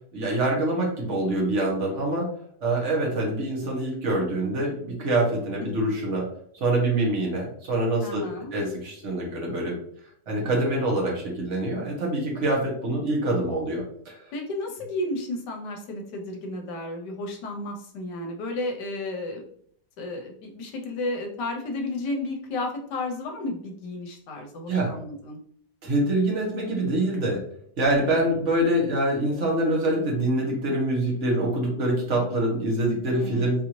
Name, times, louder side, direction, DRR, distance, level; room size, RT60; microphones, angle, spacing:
voice 1, 0.1-2.3 2.6-6.3 6.6-8.3 8.5-9.8 10.3-14.2 24.7-24.9 25.8-27.4 27.8-33.6, right 1 dB, 45° right, -2 dB, 1.2 m, -25 dB
voice 2, 8.0-8.5 14.3-19.4 20.0-25.4 33.1-33.6, left 2 dB, 75° left, 2 dB, 1.2 m, -33 dB
3.9 x 2.6 x 2.9 m, 0.63 s
omnidirectional pair, 1.9 m